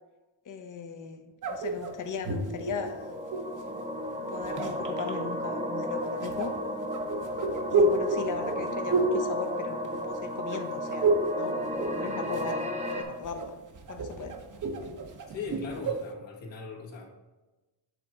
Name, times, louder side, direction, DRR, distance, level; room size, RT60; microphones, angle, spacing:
voice 1, 0.5-3.1 4.3-6.5 7.7-11.6 11.9-12.6 12.9-13.6 13.9-14.4, left 5 dB, 40° left, 6 dB, 0.8 m, -38 dB
sound 1, 1.4-3.6 4.3-5.1 6.2-10.2 10.5-11.4 11.7-12.6 12.9-16.1, right 2 dB, 40° right, 0.8 m, -30 dB
sound 2, 2.4-13.0, equal, 15° right, 0.9 m, -33 dB
voice 2, 15.3-17.1, left 5 dB, 70° left, -3 dB, 1.7 m, -39 dB
8.0 x 3.2 x 4.4 m, 1.1 s
cardioid pair, 80°, 46 cm